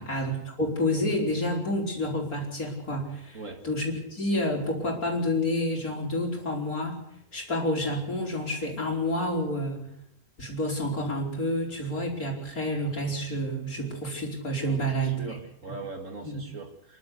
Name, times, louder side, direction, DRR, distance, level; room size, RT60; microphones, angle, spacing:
voice 1, 0.0-7.0 7.3-9.9 10.4-15.4 16.2-16.4, left 1 dB, 70° left, 0 dB, 5.4 m, -29 dB
voice 2, 14.7-17.0, right 2 dB, 55° right, 5 dB, 2.6 m, -41 dB
28.0 x 12.0 x 8.3 m, 0.73 s
omnidirectional pair, 1.6 m